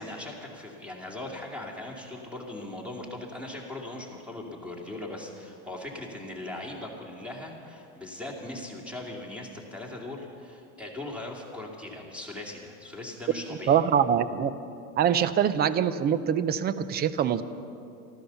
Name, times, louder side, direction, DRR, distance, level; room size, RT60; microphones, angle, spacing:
voice 1, 0.0-13.8, left 1 dB, ahead, 0 dB, 2.6 m, -39 dB
voice 2, 13.7-14.5 15.0-17.4, right 8 dB, 20° right, 15 dB, 0.4 m, -24 dB
13.5 x 13.5 x 7.0 m, 2.6 s
supercardioid pair, 120°, 48 cm